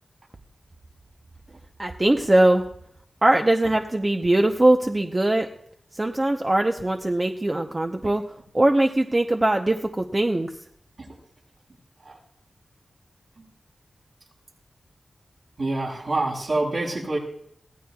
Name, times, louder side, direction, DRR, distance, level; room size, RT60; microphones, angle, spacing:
voice 1, 1.8-2.6 3.2-5.5 5.9-8.2 8.5-10.5, right 1 dB, 25° right, 3 dB, 0.8 m, -21 dB
voice 2, 15.6-17.2, right 2 dB, 60° right, -4 dB, 7.2 m, -27 dB
24.0 x 17.5 x 2.4 m, 0.71 s
wide cardioid pair, 85°, 0 cm